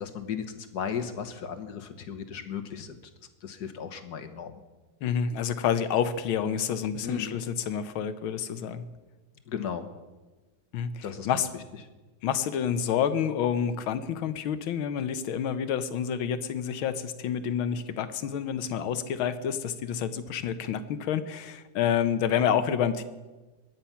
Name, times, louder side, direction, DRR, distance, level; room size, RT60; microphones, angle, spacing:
voice 1, 0.0-3.0 3.4-4.6 7.0-7.4 9.5-9.9 11.0-11.6, left 7 dB, 55° left, 8 dB, 1.5 m, -35 dB
voice 2, 5.0-8.9 10.7-11.5 12.2-23.0, left 8 dB, 75° left, 12 dB, 1.7 m, -28 dB
22.5 x 9.5 x 5.7 m, 1.2 s
omnidirectional pair, 2.3 m